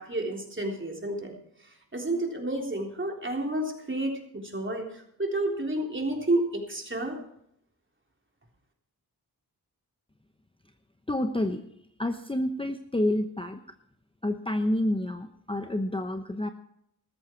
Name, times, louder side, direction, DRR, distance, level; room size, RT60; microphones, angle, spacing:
voice 1, 0.0-1.3 1.9-7.2, right 1 dB, 30° right, 1 dB, 3.6 m, -30 dB
voice 2, 11.1-13.6 14.2-16.5, left 1 dB, 15° left, 7 dB, 0.9 m, -29 dB
13.5 x 13.5 x 4.5 m, 0.75 s
cardioid pair, 65°, 39 cm